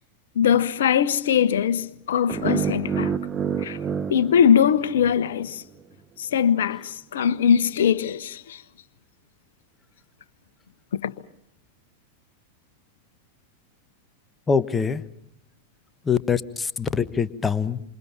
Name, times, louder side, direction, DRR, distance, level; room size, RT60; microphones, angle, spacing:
voice 1, 0.4-3.1 3.6-3.8 4.1-5.6 6.3-6.8 7.1-8.4 11.0-11.1, left 8 dB, 60° left, 1.3 m, -21 dB
sound 1, 2.3-5.4, right 7 dB, 25° right, 1.2 m, -28 dB
voice 2, 14.5-15.0 16.0-17.8, left 6 dB, 15° left, 1.2 m, -24 dB
28.0 x 28.0 x 5.7 m
figure-of-eight pair, 90°, 0 cm